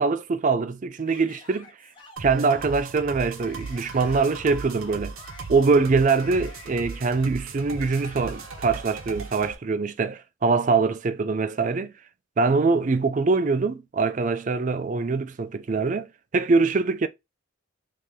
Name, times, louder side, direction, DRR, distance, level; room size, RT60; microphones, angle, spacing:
voice 1, 0.0-1.7 2.2-5.1 5.5-11.9 12.4-17.1, right 4 dB, 35° right, 0.4 m, -23 dB
Yell / Screaming, 1.0-9.3, left 3 dB, 25° left, 1.1 m, -49 dB
sound 1, 2.2-9.5, right 4 dB, 75° right, 0.8 m, -37 dB
3.7 x 2.8 x 3.2 m
head